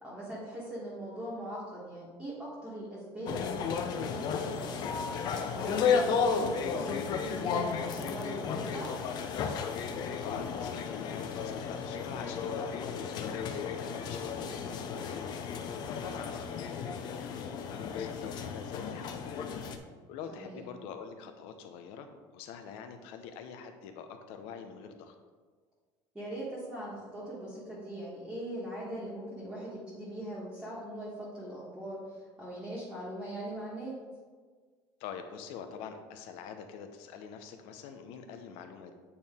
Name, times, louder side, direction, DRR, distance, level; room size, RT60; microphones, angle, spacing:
voice 1, 0.0-5.0 5.5-8.9 20.4-20.7 26.1-33.9, right 1 dB, 10° right, -9 dB, 1.4 m, -41 dB
sound 1, 3.3-19.8, left 6 dB, 50° left, 0.6 m, -33 dB
voice 2, 9.9-15.2 15.9-19.4 20.1-25.1 35.0-38.9, left 6 dB, 80° left, 7 dB, 0.8 m, -45 dB
8.6 x 4.5 x 3.6 m, 1.5 s
cardioid pair, 155°, 9 cm